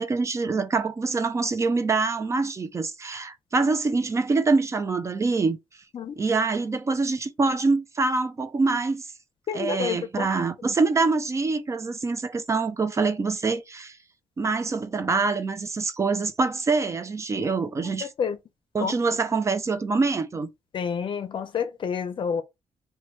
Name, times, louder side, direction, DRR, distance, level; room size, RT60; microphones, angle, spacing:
voice 1, 0.0-5.6 6.2-9.1 9.5-14.0 14.4-18.1 18.7-20.5, right 4 dB, 25° right, 0.4 m, -25 dB
voice 2, 9.5-10.3 10.6-10.7 17.4-17.5 18.0-18.4 18.8-19.0 20.7-22.4, left 7 dB, 50° left, 0.5 m, -29 dB
3.0 x 2.2 x 3.0 m
cardioid pair, 125°, 11 cm